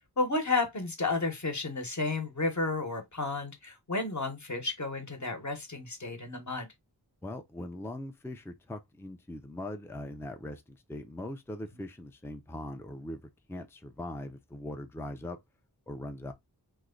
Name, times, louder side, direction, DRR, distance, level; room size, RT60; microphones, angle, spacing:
voice 1, 0.2-6.7, left 3 dB, 45° left, 1.0 m, -32 dB
voice 2, 7.2-13.2 13.5-15.4 15.9-16.3, left 1 dB, 5° left, 0.5 m, -41 dB
3.1 x 2.2 x 3.6 m
wide cardioid pair, 50°, 40 cm